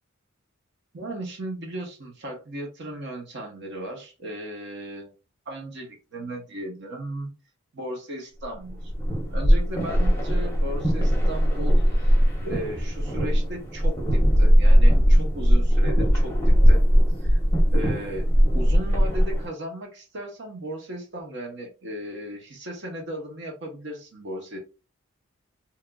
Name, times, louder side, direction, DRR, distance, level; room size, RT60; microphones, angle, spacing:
voice 1, 0.9-5.1 5.5-7.3 7.7-8.9 9.3-12.2 12.4-16.8 17.2-17.4 17.7-18.3 18.5-24.6, right 1 dB, 55° right, 0 dB, 0.7 m, -36 dB
sound 1, 8.7-19.5, equal, 10° left, 0.7 m, -19 dB
2.9 x 2.4 x 2.2 m, 0.31 s
head